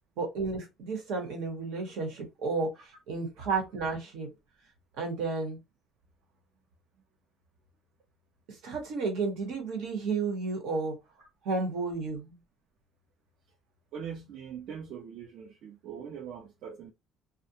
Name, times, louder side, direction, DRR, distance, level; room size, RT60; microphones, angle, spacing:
voice 1, 0.2-2.7 3.1-4.3 5.0-5.6 8.6-10.9 11.4-12.4, right 4 dB, 85° right, 1.1 m, -32 dB
voice 2, 13.9-16.9, right 7 dB, 65° right, 0.5 m, -42 dB
2.5 x 2.1 x 2.7 m
cardioid pair, 140°, 0 cm